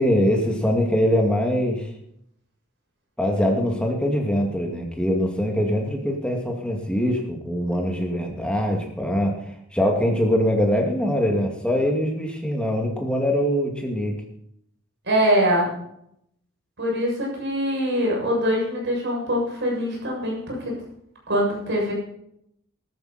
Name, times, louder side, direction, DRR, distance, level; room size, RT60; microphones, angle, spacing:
voice 1, 0.0-1.9 3.2-9.4 9.7-14.2, equal, 5° left, 1 dB, 2.4 m, -23 dB
voice 2, 15.1-15.7 16.8-20.8 21.3-21.9, equal, 55° right, -2 dB, 7.3 m, -23 dB
14.5 x 13.5 x 4.4 m, 0.73 s
head